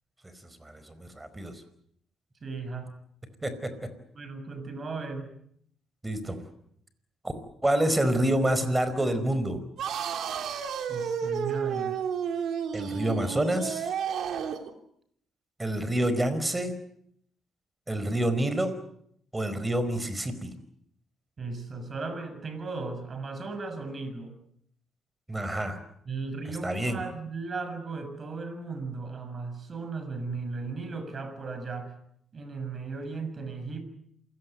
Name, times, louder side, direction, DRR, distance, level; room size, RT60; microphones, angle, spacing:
voice 1, 0.6-1.5 3.4-3.7 6.0-6.4 7.2-7.3 7.6-9.6 12.7-13.9 15.6-16.7 17.9-18.7 19.3-20.5 25.3-25.8 26.6-27.0, right 1 dB, 15° right, 12 dB, 4.7 m, -27 dB
voice 2, 2.4-2.9 3.4-3.5 4.1-5.3 10.9-12.0 21.4-24.3 26.1-31.9 32.3-33.8, right 4 dB, 40° right, 10 dB, 6.6 m, -36 dB
sound 1, 9.8-14.7, right 7 dB, 70° right, 3.1 m, -31 dB
28.0 x 17.5 x 9.2 m, 0.69 s
cardioid pair, 90°, 0 cm